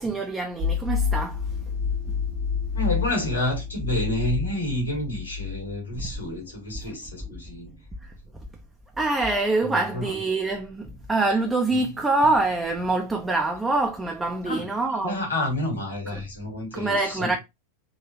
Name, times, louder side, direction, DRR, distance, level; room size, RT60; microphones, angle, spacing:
voice 1, 0.0-1.4 6.8-6.9 7.2-7.3 8.0-8.1 9.0-15.2 16.1-16.2 16.7-17.4, right 2 dB, 10° right, 0.5 m, -25 dB
sound 1, 0.6-5.8, left 6 dB, 50° right, 0.9 m, -28 dB
voice 2, 2.7-7.7 9.6-10.1 11.7-11.8 14.4-14.7 15.0-17.4, left 1 dB, 75° left, 1.8 m, -29 dB
3.9 x 2.7 x 2.9 m
figure-of-eight pair, 90°, 0 cm